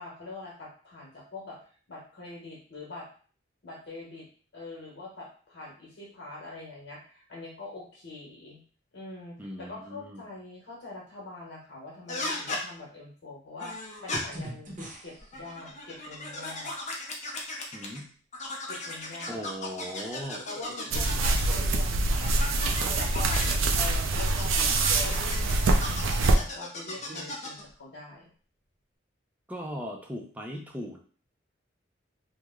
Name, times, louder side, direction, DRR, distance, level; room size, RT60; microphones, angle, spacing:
voice 1, 0.0-1.6 1.9-3.1 3.6-4.3 4.5-8.6 8.9-16.7 18.7-19.4 20.4-28.3, left 2 dB, 60° left, -3 dB, 1.1 m, -44 dB
voice 2, 9.4-10.2 17.7-18.1 19.3-20.4 29.5-31.0, equal, 10° right, 1 dB, 0.4 m, -38 dB
sound 1, 12.1-12.6 13.6-14.2 15.2-18.0 18.3-21.6 22.2-23.5 24.2-27.6, left 2 dB, 35° left, 0.6 m, -36 dB
sound 2, 14.1-15.4 17.2-17.3 20.1-21.9 22.7-23.7 24.5-25.3 26.9-27.7 28.3-28.4, right 1 dB, 40° right, 0.7 m, -44 dB
sound 3, 20.9-26.4, right 2 dB, 85° right, 0.4 m, -25 dB
3.0 x 2.1 x 3.5 m, 0.42 s
head